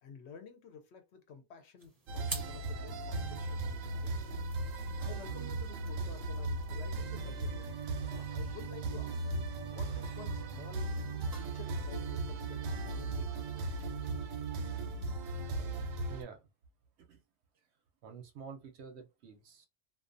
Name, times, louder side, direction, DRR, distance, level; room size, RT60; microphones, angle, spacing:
voice 1, 0.0-4.2 5.0-7.7 8.0-10.9 11.3-13.7, left 6 dB, 65° left, 0.8 m, -52 dB
sound 1, 1.8-14.6, right 2 dB, 25° right, 0.5 m, -53 dB
sound 2, 2.1-16.2, right 3 dB, 90° right, 1.0 m, -37 dB
voice 2, 16.1-16.5 17.0-17.2 18.0-19.7, right 6 dB, 65° right, 0.7 m, -49 dB
2.4 x 2.2 x 2.5 m
omnidirectional pair, 1.4 m